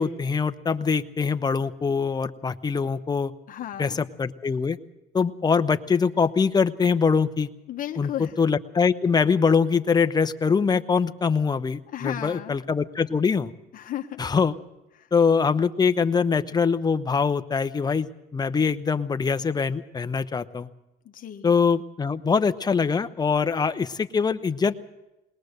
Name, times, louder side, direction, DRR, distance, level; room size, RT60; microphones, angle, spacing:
voice 1, 0.0-3.3 3.8-4.8 5.1-7.5 8.0-13.5 14.2-14.5 15.1-20.7 21.4-24.8, left 5 dB, 25° left, 10 dB, 0.9 m, -23 dB
voice 2, 3.5-4.0 7.7-8.3 11.9-12.6 13.7-14.2 15.0-15.1 21.0-21.5, left 11 dB, 55° left, 5 dB, 1.2 m, -34 dB
21.0 x 20.0 x 6.6 m, 0.96 s
cardioid pair, 110°, 17 cm